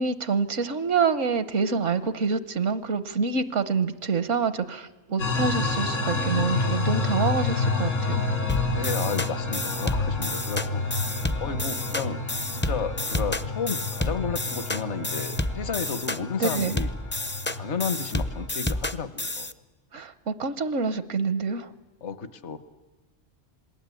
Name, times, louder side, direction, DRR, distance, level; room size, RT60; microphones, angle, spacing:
voice 1, 0.0-8.2 16.4-16.8 19.9-21.7, right 5 dB, 70° right, 13 dB, 1.3 m, -26 dB
sound 1, 5.2-18.5, left 3 dB, 80° left, 4.0 m, -29 dB
sound 2, 8.5-19.5, left 1 dB, 15° left, 0.5 m, -30 dB
voice 2, 8.7-10.8 11.4-12.2 12.5-16.9 17.6-19.5 22.0-22.6, left 6 dB, 65° left, 13 dB, 1.4 m, -32 dB
27.5 x 20.5 x 8.3 m, 1.2 s
omnidirectional pair, 1.3 m